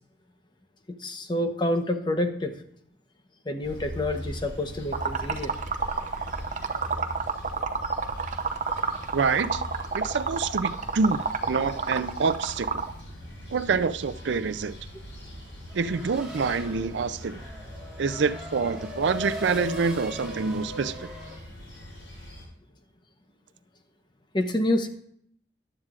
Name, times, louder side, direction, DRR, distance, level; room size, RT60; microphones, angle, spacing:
voice 1, 1.0-2.5 3.5-5.5 24.3-24.9, left 1 dB, 25° left, 6 dB, 0.9 m, -27 dB
sound 1, 3.6-22.5, left 1 dB, 90° left, 5.1 m, -41 dB
Liquid, 4.9-12.9, right 5 dB, 40° right, 0.7 m, -29 dB
voice 2, 9.1-9.6 9.9-11.2 11.5-12.8 13.5-14.8 15.7-17.4 18.0-21.1, right 5 dB, 80° right, 11 dB, 0.5 m, -26 dB
Race car auto racing / Accelerating revving vroom, 15.7-21.4, left 1 dB, 5° right, 2.4 m, -39 dB
14.5 x 11.0 x 2.5 m, 0.66 s
head